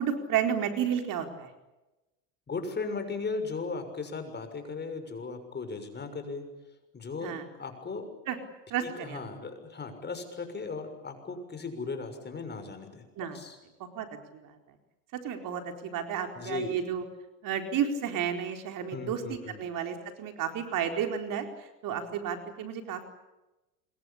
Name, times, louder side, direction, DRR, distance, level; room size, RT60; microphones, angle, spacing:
voice 1, 0.0-1.5 7.2-7.4 8.3-8.4 8.7-9.2 13.2-13.4 13.8-14.1 14.3-14.6 15.1-17.0 17.4-23.0, right 8 dB, 55° right, 5 dB, 4.4 m, -32 dB
voice 2, 2.5-6.4 6.9-8.1 8.8-13.6 16.4-16.8 18.9-19.6, left 4 dB, 25° left, 7 dB, 6.5 m, -37 dB
27.5 x 23.0 x 8.7 m, 1.0 s
supercardioid pair, 95°, 39 cm